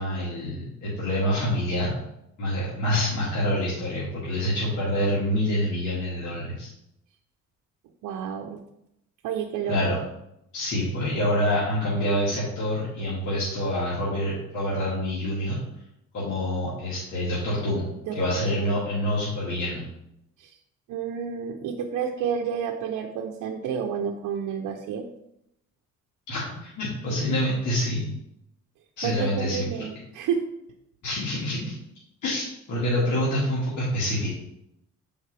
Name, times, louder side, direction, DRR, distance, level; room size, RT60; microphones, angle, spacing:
voice 1, 0.0-2.0 2.4-6.7 9.7-10.0 10.5-15.6 16.1-17.8 18.1-19.8 26.3-28.0 29.0-29.7 31.0-31.7 32.2-34.3, left 1 dB, 75° left, -7 dB, 2.0 m, -26 dB
voice 2, 8.0-8.6 9.2-10.0 18.0-18.2 18.6-18.8 20.4-20.6 20.9-25.1 29.0-30.4, right 7 dB, 85° right, 2 dB, 0.7 m, -30 dB
7.5 x 5.1 x 3.3 m, 0.80 s
cardioid pair, 90°, 30 cm